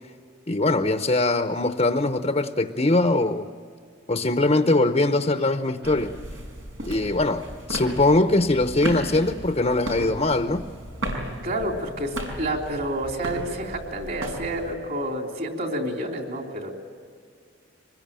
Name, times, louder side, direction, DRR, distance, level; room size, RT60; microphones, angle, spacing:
voice 1, 0.5-3.5 4.1-6.1 6.8-10.6, left 2 dB, 30° left, 8 dB, 0.8 m, -22 dB
sound 1, 5.8-14.8, right 1 dB, 85° right, 5.5 m, -35 dB
voice 2, 11.4-16.7, right 1 dB, 50° right, 2 dB, 3.6 m, -29 dB
25.0 x 21.0 x 8.9 m, 2.1 s
head